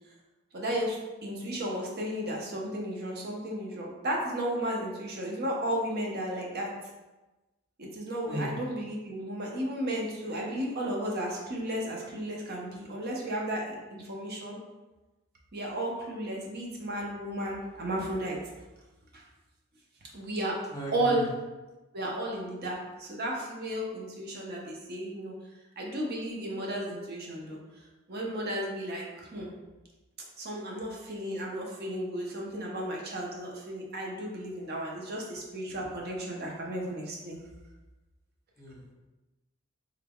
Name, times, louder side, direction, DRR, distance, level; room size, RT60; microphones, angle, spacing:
voice 1, 0.5-6.7 7.8-14.6 15.5-18.4 19.1-19.2 20.1-20.6 20.9-21.2 21.9-25.4 25.8-29.5 30.4-37.4, right 1 dB, 50° right, -1 dB, 0.7 m, -34 dB
voice 2, 20.7-21.3 38.6-38.9, right 1 dB, 15° left, -3 dB, 0.5 m, -36 dB
3.5 x 2.2 x 3.5 m, 1.1 s
head